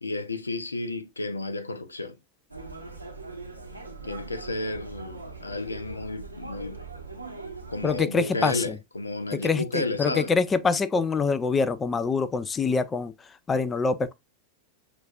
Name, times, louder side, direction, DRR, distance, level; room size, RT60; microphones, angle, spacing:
voice 1, 0.0-2.2 4.0-6.8 7.7-10.3, left 2 dB, 80° left, 0.4 m, -32 dB
sound 1, 2.5-8.0, right 3 dB, 85° right, 0.7 m, -41 dB
voice 2, 7.8-8.7 9.3-13.1 13.5-14.1, left 4 dB, 20° left, 0.3 m, -25 dB
6.1 x 2.4 x 2.4 m
figure-of-eight pair, 90°, 0 cm